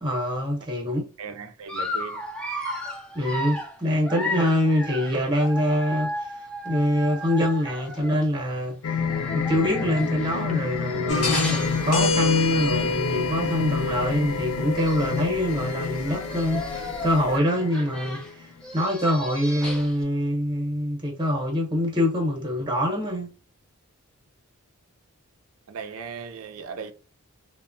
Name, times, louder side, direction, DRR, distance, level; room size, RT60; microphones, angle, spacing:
voice 1, 0.0-1.1 3.1-8.8 9.3-23.3, left 1 dB, 20° right, 0.8 m, -25 dB
voice 2, 1.2-2.2 25.7-26.9, right 6 dB, 65° right, 0.4 m, -37 dB
Dog, 1.7-8.3 9.0-12.6 13.1-13.2 13.5-13.6 14.5-14.6 14.7-15.3 15.9-20.0, left 1 dB, 5° left, 0.4 m, -35 dB
sound 1, 8.8-18.6, left 6 dB, 65° left, 0.4 m, -30 dB
sound 2, 11.1-17.4, left 2 dB, 85° left, 0.8 m, -29 dB
3.1 x 2.1 x 2.5 m
head